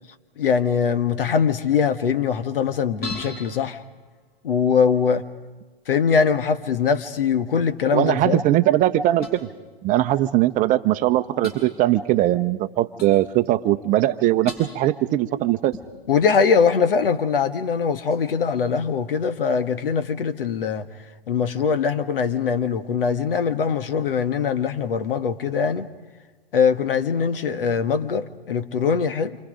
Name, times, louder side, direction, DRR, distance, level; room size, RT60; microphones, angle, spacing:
voice 1, 0.4-3.8 4.4-5.3 5.9-8.4 16.1-20.9 21.3-25.9 26.5-29.4, left 6 dB, 70° left, 1.6 m, -22 dB
sound 1, 3.0-4.8 9.2-9.4 10.5-10.6 11.4-11.6 13.0-13.2 14.5-14.7 15.7-16.3 18.1-18.4, left 2 dB, 30° left, 7.9 m, -37 dB
voice 2, 7.9-9.5 9.8-15.7, right 14 dB, 25° right, 0.9 m, -20 dB
28.0 x 26.0 x 5.2 m
hypercardioid pair, 120°, 29 cm